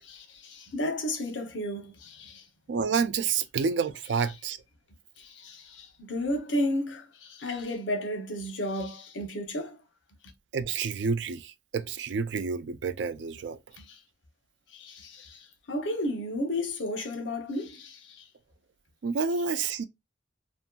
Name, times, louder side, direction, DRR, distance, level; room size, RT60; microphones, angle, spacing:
voice 1, 0.0-2.4 5.2-9.8 13.8-14.0 14.7-18.3, left 1 dB, 80° left, 0.8 m, -33 dB
voice 2, 2.7-4.6 10.5-13.6 19.0-19.9, right 5 dB, 70° right, 0.4 m, -29 dB
2.8 x 2.6 x 2.2 m
head